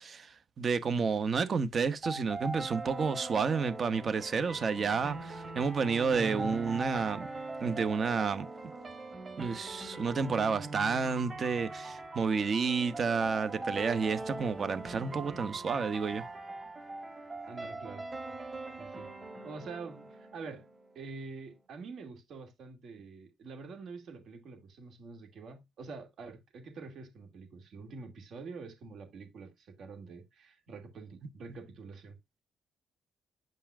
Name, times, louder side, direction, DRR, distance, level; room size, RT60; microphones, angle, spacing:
voice 1, 0.0-7.3 7.6-8.4 9.4-16.2, right 5 dB, 45° right, 1.0 m, -30 dB
sound 1, 2.0-21.0, right 2 dB, 30° right, 2.0 m, -41 dB
voice 2, 17.5-18.0 18.8-19.1 19.4-20.7 20.9-32.2, right 4 dB, 65° right, 2.3 m, -46 dB
9.0 x 5.5 x 2.4 m
cardioid pair, 90°, 0 cm